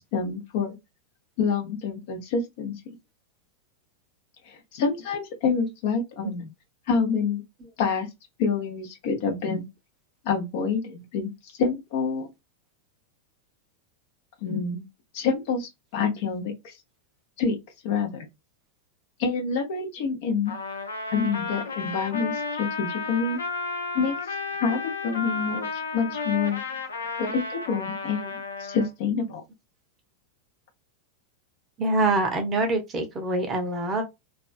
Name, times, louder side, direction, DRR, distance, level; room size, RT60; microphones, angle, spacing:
voice 1, 0.1-0.8 1.4-2.8 4.5-6.4 6.9-7.4 7.8-8.1 8.4-9.6 10.2-11.3 11.6-12.3 14.4-14.8 15.1-16.8 17.4-17.6 17.8-18.3 19.2-20.5 21.1-23.4 23.9-24.1 24.6-26.6 27.2-29.4, left 5 dB, 50° left, 0.8 m, -27 dB
Trumpet, 20.5-28.9, left 4 dB, 70° left, 0.5 m, -33 dB
voice 2, 31.8-34.1, right 2 dB, 25° right, 0.7 m, -25 dB
2.4 x 2.3 x 2.4 m
figure-of-eight pair, 90°, 0 cm